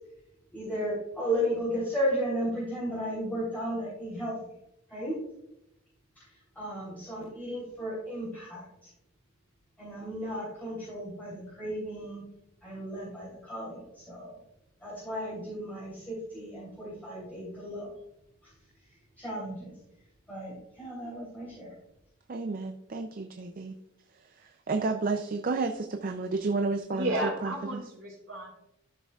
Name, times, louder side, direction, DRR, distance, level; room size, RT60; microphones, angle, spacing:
voice 1, 0.5-4.3 4.9-5.1 6.6-8.9 9.8-12.2 12.6-14.4 14.8-17.9 18.4-18.5 19.2-19.7 20.3-21.7, equal, 10° left, -9 dB, 3.3 m, -34 dB
voice 2, 22.3-23.8 24.1-27.8, right 3 dB, 40° right, 6 dB, 0.4 m, -31 dB
voice 3, 26.9-28.5, right 1 dB, 65° right, -1 dB, 3.4 m, -32 dB
12.5 x 6.5 x 2.4 m, 0.82 s
head